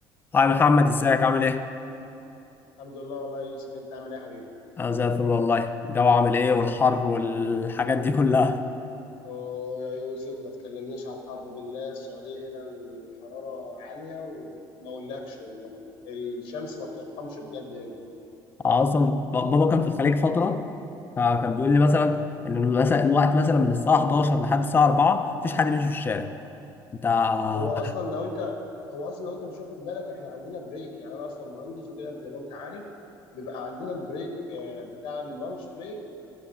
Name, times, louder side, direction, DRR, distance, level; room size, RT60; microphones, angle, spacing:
voice 1, 0.3-1.7 4.8-8.6 18.6-20.7 21.2-26.3 27.0-27.7, left 4 dB, 25° left, 9 dB, 0.4 m, -22 dB
voice 2, 2.8-4.5 9.2-15.7 16.0-17.9 27.5-28.6 28.9-32.8 33.3-36.0, left 3 dB, 85° left, 3 dB, 1.2 m, -36 dB
11.0 x 5.8 x 5.6 m, 2.9 s
cardioid pair, 125°, 9 cm